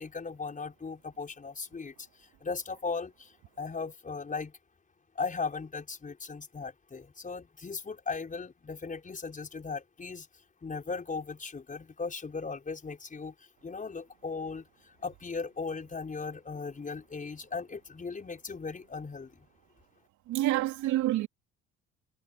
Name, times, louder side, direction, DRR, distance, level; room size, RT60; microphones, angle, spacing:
voice 1, 0.0-4.6 5.1-10.3 10.6-19.5, left 4 dB, 25° left, 5.8 m, -38 dB
voice 2, 20.3-21.3, right 15 dB, 75° right, 3.1 m, -27 dB
supercardioid pair, 95°, 30 cm